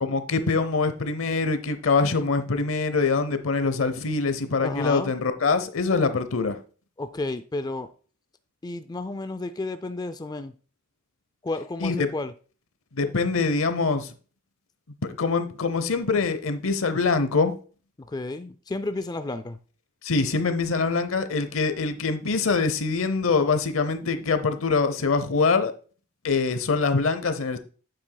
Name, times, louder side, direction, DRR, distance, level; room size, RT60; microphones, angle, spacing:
voice 1, 0.0-6.6 11.8-12.1 13.0-14.1 15.0-17.5 20.0-25.7 26.2-27.6, left 4 dB, 90° left, 0.8 m, -24 dB
voice 2, 4.6-5.1 7.0-7.9 8.6-10.5 11.4-12.3 18.0-19.6, left 2 dB, 20° left, 0.4 m, -32 dB
8.7 x 7.8 x 2.3 m
head